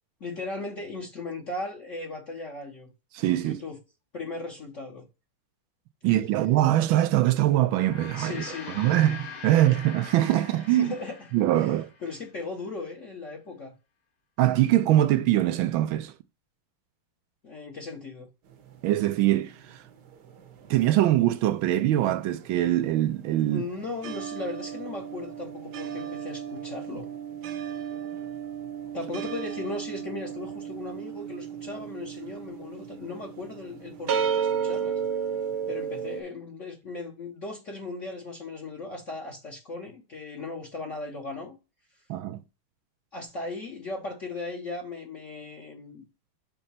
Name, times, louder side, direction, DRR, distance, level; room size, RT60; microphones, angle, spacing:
voice 1, 0.2-2.9 3.4-3.8 4.1-5.0 8.1-8.8 10.7-13.7 17.4-18.3 23.5-27.0 28.9-35.0 35.7-41.6 43.1-46.0, left 3 dB, 40° left, 1.3 m, -37 dB
voice 2, 3.1-3.6 6.0-8.4 8.7-10.9 11.3-11.9 14.4-16.1 18.8-19.8 20.7-23.6 42.1-42.4, right 13 dB, 80° right, 1.3 m, -23 dB
Gong, 7.6-12.3, left 6 dB, 70° left, 2.3 m, -43 dB
sound 1, 18.5-21.2 21.4-36.2, right 8 dB, 60° right, 1.4 m, -34 dB
5.5 x 3.8 x 5.8 m
omnidirectional pair, 2.3 m